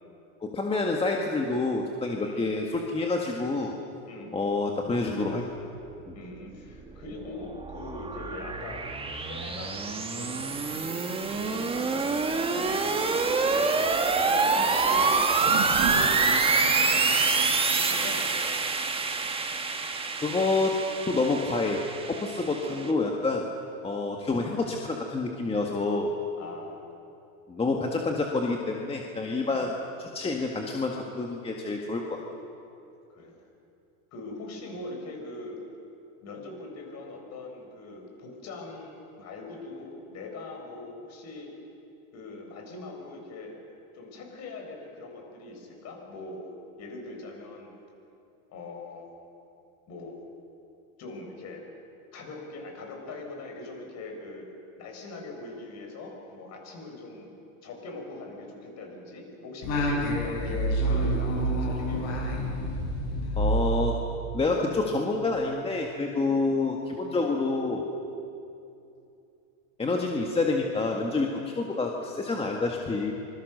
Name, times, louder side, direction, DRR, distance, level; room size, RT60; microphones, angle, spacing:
voice 1, 0.4-3.7 4.3-5.4 6.1-6.2 20.2-20.8 21.1-21.8 22.1-23.4 23.8-26.1 27.5-29.7 30.0-32.2 63.4-64.0 64.3-67.8 69.8-73.1, left 3 dB, 15° left, 1 dB, 1.7 m, -28 dB
voice 2, 6.1-8.9 9.1-11.0 11.4-15.2 15.8-18.5 22.5-22.9 26.4-26.8 29.5-29.7 33.1-33.3 34.1-35.6 36.2-41.5 42.1-43.6 43.9-46.5 46.8-47.7 48.5-49.1 49.9-50.2 51.0-51.6 52.1-54.5 54.8-57.3 57.6-62.3, left 2 dB, 40° left, 2 dB, 6.3 m, -42 dB
sound 1, 6.9-22.9, right 4 dB, 15° right, 1.7 m, -27 dB
sound 2, 15.3-19.8 20.3-20.4, right 8 dB, 65° right, 2.8 m, -37 dB
Singing, 59.6-64.4, right 1 dB, 60° left, 7.7 m, -28 dB
25.5 x 22.0 x 6.7 m, 2.7 s
supercardioid pair, 125°, 42 cm